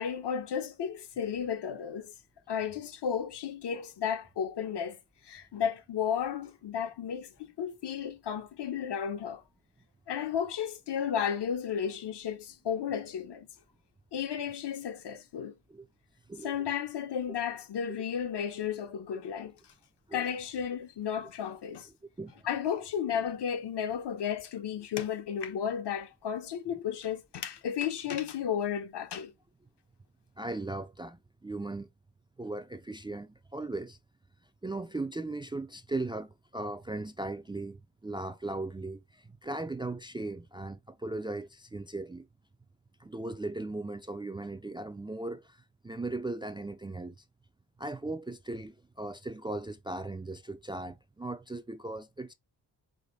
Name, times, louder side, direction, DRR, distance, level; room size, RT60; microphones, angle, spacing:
voice 1, 0.0-2.1 2.5-5.0 5.2-9.4 10.1-13.5 14.1-15.5 16.4-19.5 20.1-21.9 22.4-29.3, left 8 dB, 65° left, 0.9 m, -33 dB
voice 2, 30.4-31.9 32.4-34.0 34.6-42.3 43.0-47.2 47.8-52.3, right 2 dB, 10° right, 0.3 m, -38 dB
4.9 x 2.2 x 3.9 m
cardioid pair, 70°, 43 cm